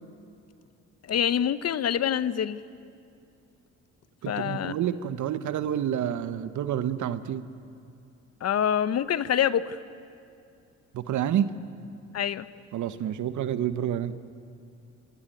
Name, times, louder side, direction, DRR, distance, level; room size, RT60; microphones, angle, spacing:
voice 1, 1.1-2.6 4.3-4.8 8.4-9.8 12.1-12.5, left 9 dB, 55° left, 15 dB, 0.9 m, -26 dB
voice 2, 4.2-7.4 10.9-11.5 12.7-14.2, right 10 dB, 75° right, 12 dB, 1.3 m, -28 dB
28.5 x 19.5 x 9.3 m, 2.5 s
cardioid pair, 90°, 30 cm